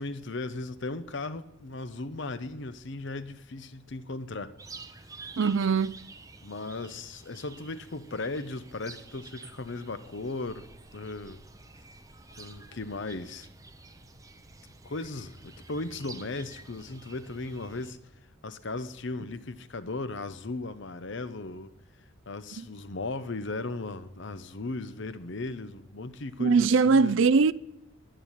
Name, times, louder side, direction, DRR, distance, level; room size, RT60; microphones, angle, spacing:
voice 1, 0.0-4.5 6.4-10.7 10.9-11.4 12.4-13.5 14.8-18.0 18.4-21.7 22.3-27.1, left 3 dB, 55° left, 0.8 m, -37 dB
sound 1, 4.6-17.9, right 3 dB, 15° right, 0.7 m, -50 dB
voice 2, 5.4-6.0 22.6-22.7 26.4-27.5, right 4 dB, 65° right, 0.4 m, -22 dB
11.0 x 10.0 x 10.0 m
head